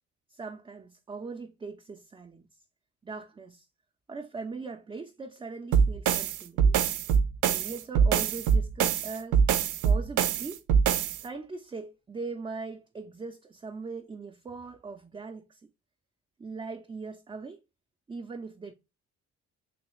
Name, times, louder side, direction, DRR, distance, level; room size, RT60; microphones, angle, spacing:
voice 1, 0.3-2.5 3.0-3.7 4.1-6.8 7.5-9.4 9.8-10.6 11.1-15.6 16.4-17.6 18.1-18.7, right 4 dB, 15° right, 0.4 m, -40 dB
sound 1, 5.7-11.2, right 7 dB, 85° right, 0.5 m, -24 dB
3.2 x 3.0 x 3.0 m
cardioid pair, 90°, 30 cm